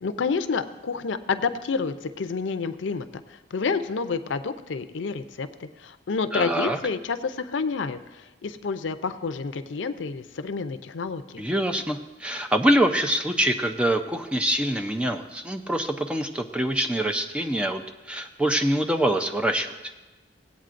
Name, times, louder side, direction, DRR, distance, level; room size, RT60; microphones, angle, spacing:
voice 1, 0.0-11.4, left 5 dB, 85° left, 11 dB, 0.5 m, -29 dB
voice 2, 6.3-6.8 11.4-19.7, right 1 dB, 5° right, 5 dB, 0.5 m, -25 dB
17.5 x 8.3 x 2.5 m, 1.1 s
head